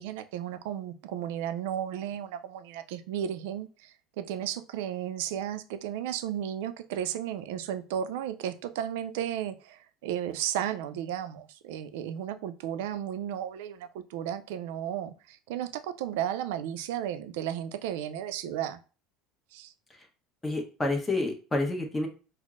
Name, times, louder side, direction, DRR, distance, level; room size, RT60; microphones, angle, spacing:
voice 1, 0.0-18.8 19.5-19.7, right 10 dB, 80° right, 10 dB, 0.3 m, -34 dB
voice 2, 20.4-22.1, left 2 dB, 15° left, 3 dB, 0.9 m, -29 dB
4.3 x 2.0 x 2.4 m, 0.35 s
supercardioid pair, 90°, 0 cm